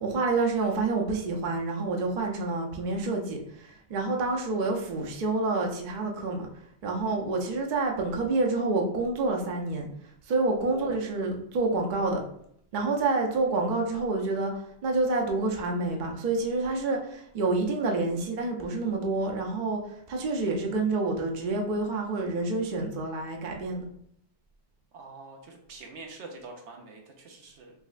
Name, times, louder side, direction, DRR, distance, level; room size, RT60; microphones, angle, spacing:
voice 1, 0.0-6.5 6.8-9.9 10.3-12.2 12.7-14.5 14.8-19.8 20.1-23.8, right 3 dB, 50° right, 1 dB, 0.7 m, -28 dB
voice 2, 10.6-11.3 24.9-27.7, right 3 dB, 80° right, 2 dB, 1.0 m, -45 dB
3.8 x 3.1 x 2.4 m, 0.70 s
omnidirectional pair, 1.1 m